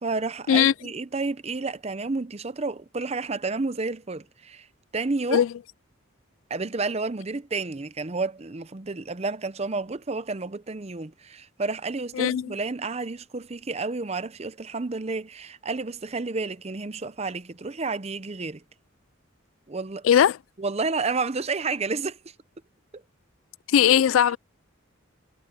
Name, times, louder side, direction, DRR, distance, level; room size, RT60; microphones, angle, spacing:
voice 1, 0.0-4.7 4.9-5.4 6.5-18.6 19.7-20.0 20.6-22.2, right 3 dB, 30° right, 0.7 m, -30 dB
voice 2, 20.0-20.4 23.7-24.4, left 9 dB, 75° left, 0.3 m, -19 dB
head